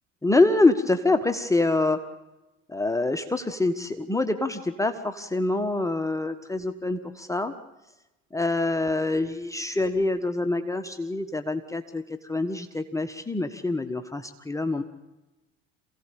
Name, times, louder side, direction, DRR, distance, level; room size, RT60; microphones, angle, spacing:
voice 1, 0.2-2.0 2.7-7.5 8.3-14.8, left 2 dB, 10° left, 7 dB, 1.4 m, -25 dB
27.5 x 16.5 x 8.7 m, 1.0 s
figure-of-eight pair, 65°, 38 cm